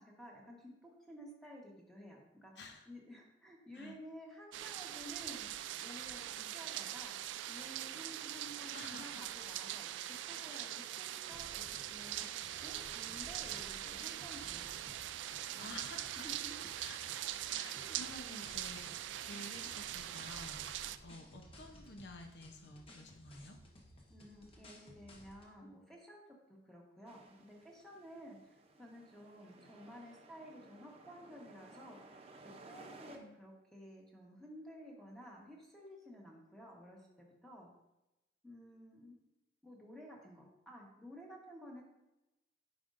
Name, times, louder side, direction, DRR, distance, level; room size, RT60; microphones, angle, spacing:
voice 1, 0.0-2.5 2.9-5.6 5.8-12.3 12.6-14.7 15.3-15.7 16.2-16.7 17.7-18.0 24.1-26.2 26.5-32.2 32.7-37.7 38.4-39.2 39.6-41.8, equal, 5° left, -2 dB, 1.2 m, -53 dB
voice 2, 2.6-2.9 3.7-4.0 8.7-9.3 10.5-10.8 15.6-16.3 16.8-17.0 17.5-18.9 19.2-23.6 32.8-33.4, left 2 dB, 70° left, 5 dB, 0.7 m, -52 dB
sound 1, 4.5-21.0, right 12 dB, 90° right, 0.3 m, -42 dB
sound 2, 11.3-25.5, left 1 dB, 30° left, 0.9 m, -57 dB
sound 3, 27.1-33.2, right 2 dB, 35° right, 0.6 m, -58 dB
9.5 x 5.1 x 2.6 m, 0.95 s
head